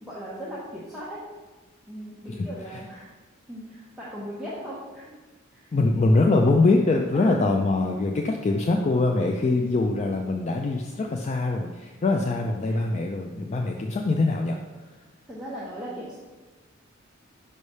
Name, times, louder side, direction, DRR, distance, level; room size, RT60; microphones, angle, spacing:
voice 1, 0.0-1.2 1.9-3.1 3.5-5.1 5.5-5.7 6.0-6.2 7.1-7.4 12.1-12.9 15.3-16.2, equal, ahead, -9 dB, 0.8 m, -38 dB
voice 2, 2.3-2.8 5.7-14.6, left 2 dB, 35° left, 3 dB, 0.3 m, -23 dB
5.4 x 3.2 x 5.4 m, 1.2 s
head